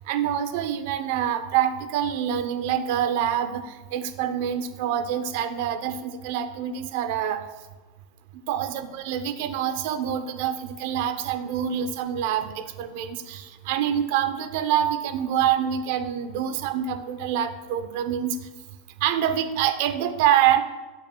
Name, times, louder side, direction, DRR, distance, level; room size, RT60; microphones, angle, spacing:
voice 1, 0.1-7.4 8.5-18.4 19.0-20.6, right 10 dB, 60° right, 9 dB, 0.7 m, -26 dB
12.0 x 6.1 x 2.3 m, 1.3 s
supercardioid pair, 135°, 0 cm